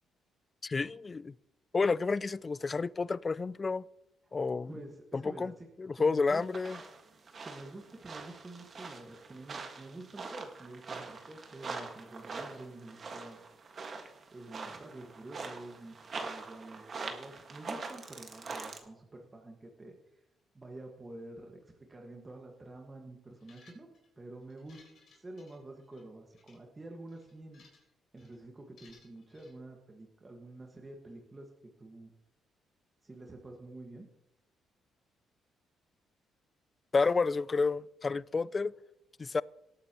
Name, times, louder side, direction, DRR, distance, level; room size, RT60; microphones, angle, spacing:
voice 1, 0.6-1.3 1.7-3.8 4.3-4.7 5.1-5.5 5.8-6.8 36.9-38.7 39.2-39.4, left 4 dB, 30° left, 0.3 m, -30 dB
voice 2, 4.7-5.7 6.0-6.4 7.4-13.4 14.3-15.9 16.2-20.0 20.5-21.6 21.9-23.9 24.2-24.8 25.1-27.6 28.1-31.5 31.8-32.1 33.0-34.1, right 2 dB, 25° right, 1.7 m, -48 dB
sound 1, 6.3-18.8, right 4 dB, 45° right, 1.7 m, -44 dB
sound 2, 23.4-24.1 24.5-26.0 26.3-26.6 27.1-27.9 28.2-28.4 28.8-29.5, left 4 dB, 60° left, 4.1 m, -62 dB
19.0 x 8.5 x 3.0 m
cardioid pair, 90°, 0 cm